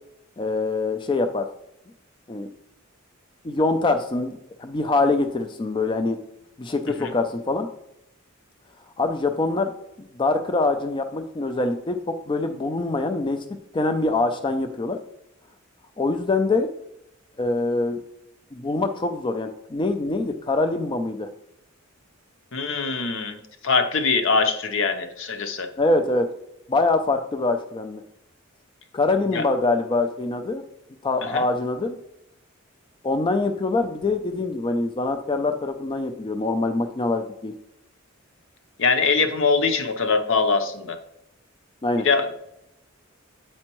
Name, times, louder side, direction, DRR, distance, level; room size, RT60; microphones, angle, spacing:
voice 1, 0.4-1.5 2.3-2.5 3.4-6.2 6.6-7.7 9.0-9.7 10.2-13.4 13.7-15.0 16.0-16.7 17.4-18.0 18.5-21.3 25.8-26.3 26.7-28.0 28.9-30.6 31.0-32.0 33.0-37.5 41.8-42.1, left 3 dB, 25° left, 7 dB, 0.4 m, -24 dB
voice 2, 22.5-25.7 29.3-29.5 31.2-31.5 38.8-41.0 42.0-42.3, left 4 dB, 65° left, 8 dB, 0.7 m, -23 dB
8.5 x 4.3 x 3.0 m, 0.82 s
head